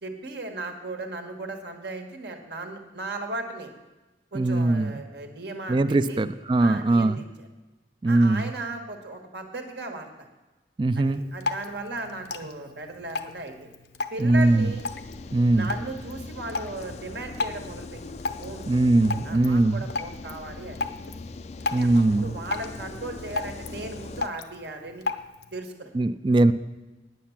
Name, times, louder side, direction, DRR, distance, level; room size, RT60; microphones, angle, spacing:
voice 1, 0.0-3.7 4.3-6.2 6.6-7.5 8.0-10.1 10.9-13.7 14.1-14.8 15.5-18.0 18.4-18.6 19.2-21.1 21.7-25.0 25.5-25.9, right 2 dB, 75° right, 4 dB, 1.6 m, -36 dB
voice 2, 4.3-5.0 5.7-7.2 8.0-8.5 10.8-11.2 14.2-14.7 15.3-15.7 18.7-19.8 21.7-22.3 25.9-26.5, right 2 dB, 25° right, 13 dB, 0.3 m, -21 dB
Drip, 11.1-25.6, left 3 dB, 75° left, 0.8 m, -36 dB
sound 1, 14.3-24.3, left 3 dB, 40° left, 0.4 m, -41 dB
9.3 x 9.2 x 7.2 m, 1.1 s
head